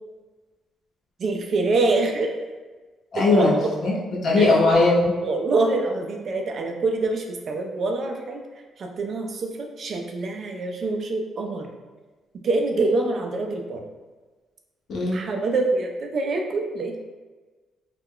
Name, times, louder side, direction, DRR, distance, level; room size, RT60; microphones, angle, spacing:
voice 1, 1.2-2.3 3.3-3.7 4.4-4.6 5.2-8.4 8.8-11.7 12.4-13.8 15.1-17.0, right 3 dB, 55° right, 2 dB, 0.4 m, -25 dB
voice 2, 3.1-5.1 14.9-15.2, left 2 dB, 60° left, -5 dB, 0.8 m, -19 dB
2.3 x 2.1 x 3.6 m, 1.3 s
cardioid pair, 90°, 0 cm